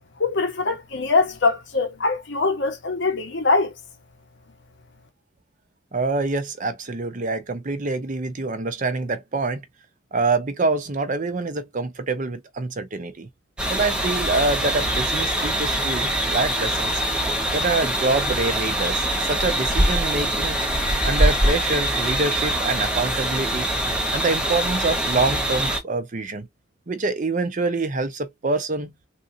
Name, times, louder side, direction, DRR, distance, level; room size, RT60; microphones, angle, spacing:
voice 1, 0.2-3.7, left 3 dB, 60° left, 1.1 m, -22 dB
voice 2, 5.9-9.6 10.1-13.3 13.7-16.9 17.5-20.6 21.0-23.7 24.1-26.5 26.9-28.9, right 3 dB, 40° right, 0.7 m, -25 dB
sound 1, 13.6-25.8, right 1 dB, 5° right, 0.9 m, -23 dB
3.7 x 2.7 x 2.6 m
head